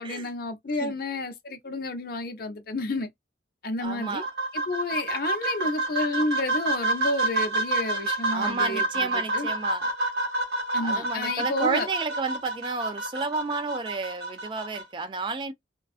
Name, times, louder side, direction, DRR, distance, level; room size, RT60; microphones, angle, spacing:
voice 1, 0.0-3.1 3.6-4.2 4.5-9.5 10.7-11.9, left 2 dB, 55° left, 0.6 m, -30 dB
voice 2, 3.8-4.3 8.3-9.9 10.8-15.5, right 4 dB, 25° right, 0.3 m, -31 dB
sound 1, 3.8-14.8, right 2 dB, 60° right, 1.2 m, -29 dB
2.5 x 2.2 x 2.3 m
head